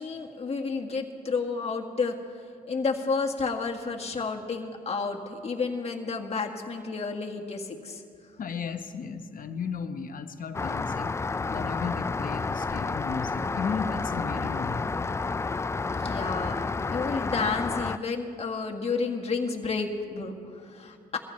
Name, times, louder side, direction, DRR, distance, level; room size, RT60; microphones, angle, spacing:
voice 1, 0.0-2.2 2.7-8.0 15.9-21.2, left 4 dB, 40° left, 2 dB, 1.7 m, -31 dB
voice 2, 8.4-11.2 11.5-14.8, left 6 dB, 60° left, 8 dB, 1.0 m, -35 dB
Rain, 10.5-18.0, left 4 dB, 15° left, 0.3 m, -30 dB
22.0 x 15.0 x 3.2 m, 2.4 s
cardioid pair, 80°, 16 cm